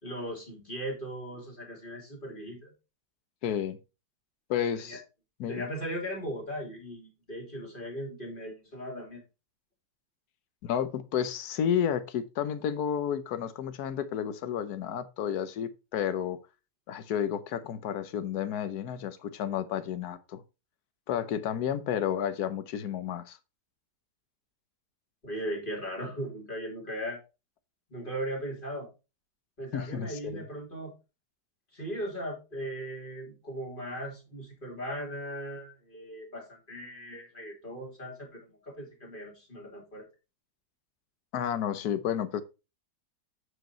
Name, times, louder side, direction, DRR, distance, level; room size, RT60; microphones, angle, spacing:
voice 1, 0.0-2.7 4.9-5.0 5.5-9.2 25.2-27.2 27.9-28.9 29.6-30.9 31.7-40.0, equal, 30° left, 3.2 m, -38 dB
voice 2, 3.4-3.8 4.5-5.0 5.4-5.7 10.6-16.4 16.9-20.4 21.1-23.4 29.7-30.4 41.3-42.4, left 9 dB, 70° left, 1.4 m, -31 dB
8.6 x 5.1 x 4.3 m
omnidirectional pair, 1.7 m